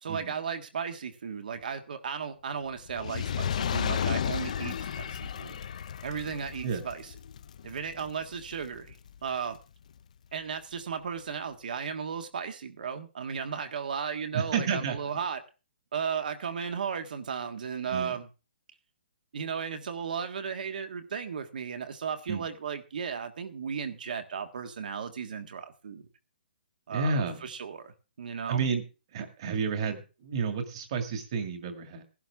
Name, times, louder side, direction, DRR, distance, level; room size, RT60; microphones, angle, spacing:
voice 1, 0.0-5.6 6.0-7.1 7.6-8.9 9.2-9.6 10.3-15.4 15.9-18.3 19.3-26.0 26.9-28.7, right 6 dB, 55° right, 7 dB, 1.6 m, -35 dB
Fire, 2.9-9.3 10.0-10.1, left 8 dB, 45° left, 0.5 m, -34 dB
voice 2, 14.3-15.0 17.9-18.2 22.3-22.5 26.9-27.4 28.5-28.8 29.1-32.0, right 5 dB, 30° right, 7 dB, 2.0 m, -31 dB
15.5 x 11.5 x 3.5 m, 0.32 s
hypercardioid pair, 170°, 5 cm